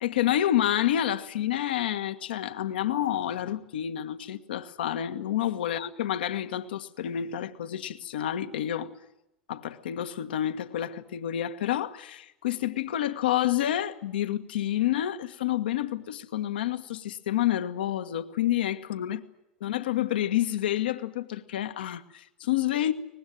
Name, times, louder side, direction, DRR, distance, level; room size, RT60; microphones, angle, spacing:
voice 1, 0.0-8.9 9.5-19.2 19.6-22.9, left 12 dB, 70° left, 1.5 m, -29 dB
24.0 x 20.0 x 9.2 m
hypercardioid pair, 85°, 5 cm